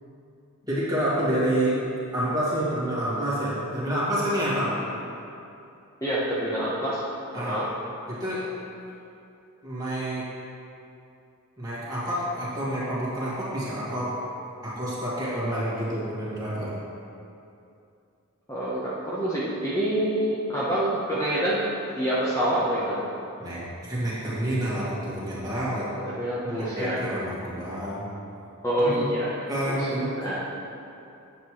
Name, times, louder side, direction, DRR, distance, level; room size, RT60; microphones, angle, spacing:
voice 1, 0.7-1.8 2.1-4.8 7.3-7.6 8.1-8.5 9.6-10.3 11.6-14.2 14.6-16.7 23.4-25.9 26.4-28.1 28.8-29.0 29.5-30.1, right 1 dB, 15° right, -9 dB, 2.0 m, -28 dB
voice 2, 6.0-7.0 7.3-7.7 18.5-21.6 22.0-23.0 26.1-27.0 28.6-29.3 29.8-29.9 30.2-30.4, right 1 dB, 15° left, -9 dB, 1.0 m, -26 dB
9.4 x 7.5 x 3.2 m, 2.6 s
head